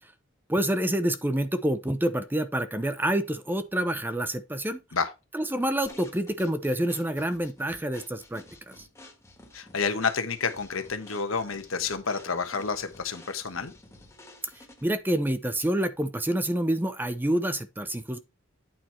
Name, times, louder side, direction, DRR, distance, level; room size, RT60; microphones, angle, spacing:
voice 1, 0.5-4.8 5.3-8.8 14.8-18.2, right 1 dB, 10° right, 0.7 m, -27 dB
sound 1, 5.9-15.0, left 2 dB, 15° left, 1.5 m, -51 dB
voice 2, 9.5-13.7, left 5 dB, 90° left, 1.2 m, -29 dB
8.9 x 4.5 x 4.4 m
head